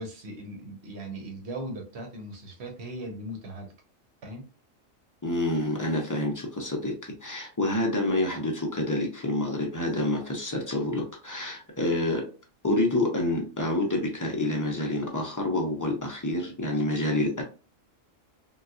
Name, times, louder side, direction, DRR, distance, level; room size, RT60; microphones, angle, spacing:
voice 1, 0.0-3.7 4.2-4.5, right 1 dB, 60° right, 3 dB, 1.1 m, -38 dB
voice 2, 5.2-12.3 12.6-17.4, left 1 dB, 25° left, 1 dB, 0.4 m, -28 dB
3.9 x 2.3 x 2.4 m, 0.34 s
omnidirectional pair, 1.4 m